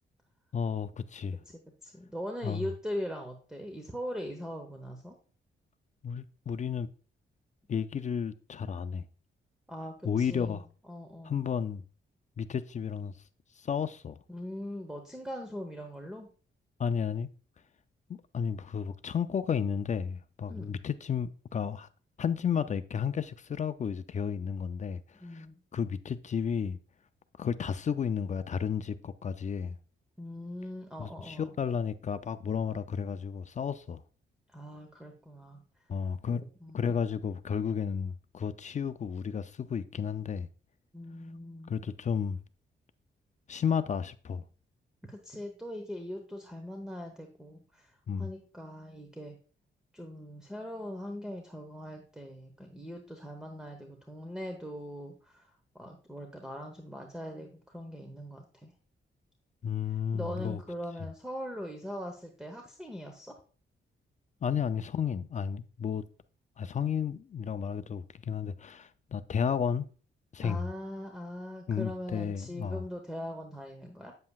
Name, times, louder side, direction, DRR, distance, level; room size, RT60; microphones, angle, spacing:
voice 1, 0.5-1.4 2.4-2.7 6.0-6.9 7.7-9.0 10.0-10.7 11.2-11.8 12.4-13.1 13.6-14.2 16.8-17.3 18.1-21.9 22.2-25.5 25.7-26.8 27.4-29.8 31.0-34.0 35.9-36.4 36.7-40.5 41.7-42.4 43.5-44.4 48.1-48.3 59.6-60.6 61.0-61.1 64.4-66.0 66.6-69.9 70.3-70.7 71.7-72.9, left 7 dB, 40° left, 0.4 m, -32 dB
voice 2, 1.5-5.2 9.7-10.6 10.9-11.4 14.3-16.3 20.5-20.8 25.2-25.6 30.2-31.5 34.5-35.6 36.3-37.0 40.9-41.7 45.0-49.3 49.9-55.5 55.7-58.7 60.1-63.3 70.4-74.1, equal, 5° right, 0.9 m, -41 dB
8.4 x 7.6 x 2.3 m
cardioid pair, 120°, 20 cm